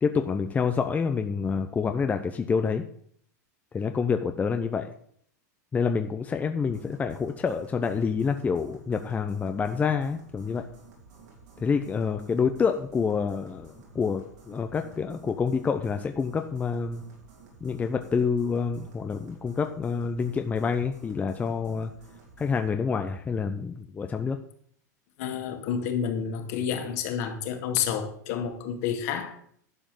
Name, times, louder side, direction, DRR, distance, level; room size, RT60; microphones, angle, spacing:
voice 1, 0.0-2.8 3.7-4.9 5.7-10.7 11.6-17.0 17.6-21.9 22.4-24.4, left 5 dB, 15° left, 6 dB, 0.7 m, -27 dB
sound 1, 6.6-22.7, right 4 dB, 75° right, 4.3 m, -52 dB
voice 2, 25.2-29.4, left 8 dB, 60° left, 4 dB, 2.2 m, -29 dB
11.5 x 5.0 x 7.7 m, 0.63 s
hypercardioid pair, 120°, 9 cm